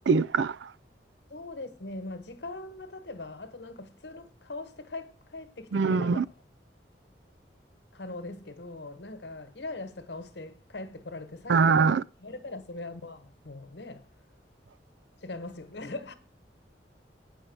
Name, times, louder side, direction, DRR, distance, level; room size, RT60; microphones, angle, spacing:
voice 1, 0.1-0.7 5.7-6.2 11.5-12.0, right 5 dB, 75° right, 0.4 m, -23 dB
voice 2, 1.3-6.2 7.9-14.1 15.2-16.2, left 2 dB, 70° left, 1.4 m, -41 dB
9.2 x 5.6 x 7.9 m
head